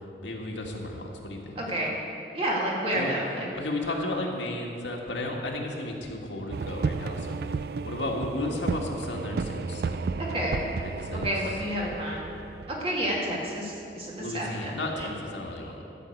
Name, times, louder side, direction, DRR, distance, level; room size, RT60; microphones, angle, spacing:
voice 1, 0.2-1.6 2.9-3.2 3.5-7.6 7.8-10.0 10.8-11.3 14.2-15.8, left 1 dB, 85° left, 0 dB, 1.8 m, -33 dB
voice 2, 1.6-1.9 2.3-3.5 10.3-10.6 11.1-12.2 12.8-15.1, equal, 30° right, -3 dB, 2.3 m, -30 dB
sound 1, 6.5-14.0, right 4 dB, 55° right, 0.3 m, -33 dB
13.0 x 6.6 x 8.4 m, 2.7 s
head